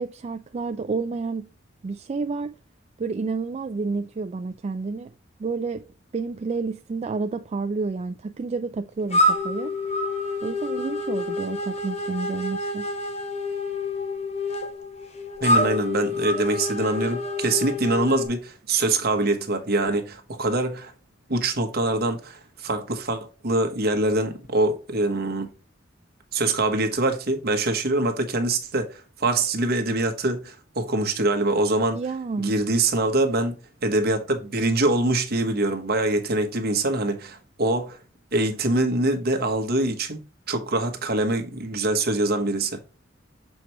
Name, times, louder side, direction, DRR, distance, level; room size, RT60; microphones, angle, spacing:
voice 1, 0.0-1.5 1.8-2.5 3.0-5.1 5.4-5.8 6.1-9.8 10.4-12.9 31.9-32.5, right 4 dB, 35° right, 0.3 m, -30 dB
sound 1, 9.1-18.3, left 1 dB, 35° left, 1.1 m, -27 dB
voice 2, 15.4-20.9 21.3-25.5 26.3-32.0 32.4-33.6 33.8-38.0 38.3-40.2 40.5-42.8, right 2 dB, 55° right, 1.2 m, -24 dB
7.0 x 4.5 x 3.0 m
head